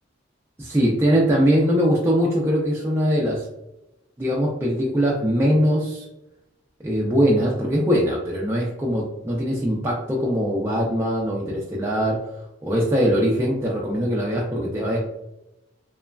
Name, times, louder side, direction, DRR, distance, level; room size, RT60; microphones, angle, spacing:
voice 1, 0.6-3.5 4.2-6.0 6.8-12.4 12.6-15.0, equal, 15° right, -4 dB, 0.3 m, -21 dB
2.9 x 2.3 x 2.2 m, 0.91 s
head